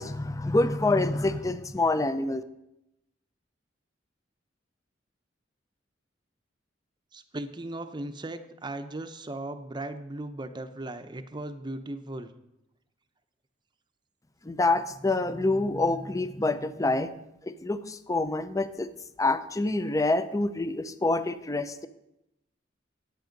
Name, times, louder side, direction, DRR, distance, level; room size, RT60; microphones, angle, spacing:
voice 1, 0.0-2.4 14.5-17.1 17.5-18.9 19.2-21.9, left 2 dB, 20° left, 12 dB, 0.5 m, -27 dB
voice 2, 7.1-12.3, right 2 dB, 25° right, 9 dB, 0.7 m, -37 dB
10.5 x 9.0 x 5.2 m, 0.87 s
head